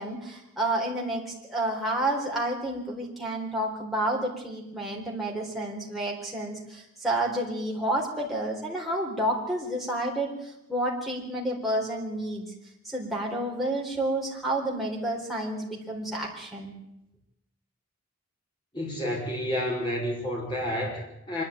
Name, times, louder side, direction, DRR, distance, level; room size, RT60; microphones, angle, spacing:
voice 1, 0.0-12.5 12.8-16.7, right 1 dB, ahead, -3 dB, 4.0 m, -30 dB
voice 2, 18.7-21.4, left 1 dB, 20° left, -2 dB, 5.8 m, -30 dB
25.0 x 12.0 x 9.2 m, 0.86 s
head